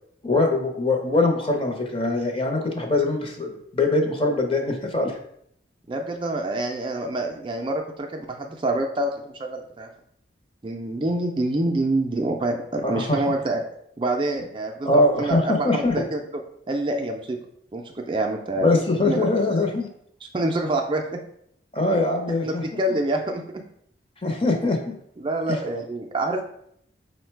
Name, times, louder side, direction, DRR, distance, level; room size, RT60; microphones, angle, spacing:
voice 1, 0.2-5.2 12.8-13.2 14.8-16.0 18.6-19.9 21.7-22.6 24.2-24.9 25.5-25.6, left 2 dB, 30° left, 2 dB, 0.6 m, -22 dB
voice 2, 5.9-9.9 10.6-13.6 14.0-16.2 16.7-17.4 17.7-18.7 19.1-19.3 20.2-21.2 22.3-23.6 25.2-26.4, right 2 dB, 25° right, 3 dB, 0.3 m, -26 dB
5.0 x 2.1 x 4.4 m, 0.72 s
head